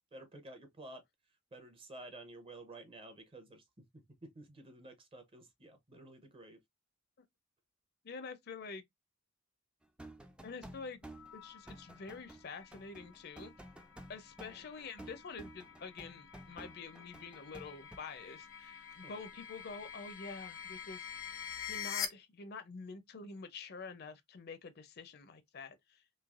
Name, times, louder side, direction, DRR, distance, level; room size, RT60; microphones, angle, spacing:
voice 1, 0.1-1.0 1.5-3.6 4.2-6.6 14.5-14.6 19.0-19.1, right 2 dB, 25° right, 0.7 m, -52 dB
voice 2, 8.0-8.8 10.4-11.0 11.3-13.5 14.1-21.1 21.7-26.0, left 4 dB, 50° left, 0.5 m, -47 dB
sound 1, 9.8-18.0, right 1 dB, 5° right, 0.3 m, -52 dB
sound 2, 11.1-22.1, left 8 dB, 85° left, 0.9 m, -47 dB
3.2 x 2.8 x 2.4 m
head